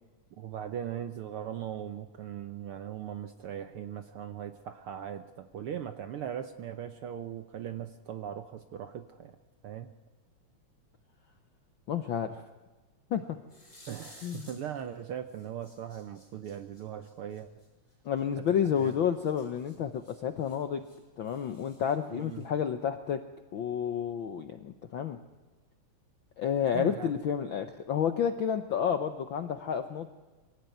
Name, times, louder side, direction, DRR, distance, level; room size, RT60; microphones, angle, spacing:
voice 1, 0.4-9.4 9.6-9.9 13.9-17.5 18.8-18.9 22.1-22.4 26.7-27.1, right 9 dB, 65° right, 9 dB, 1.4 m, -39 dB
voice 2, 11.9-12.4 13.1-13.4 14.2-14.5 18.0-20.9 21.2-23.2 23.5-25.2 26.4-30.1, left 8 dB, 70° left, 9 dB, 1.1 m, -30 dB
sound 1, 13.4-15.0 15.3-18.2 18.8-21.0 21.2-22.6, left 1 dB, 10° left, 6.4 m, -56 dB
23.5 x 16.0 x 9.2 m, 1.2 s
omnidirectional pair, 3.4 m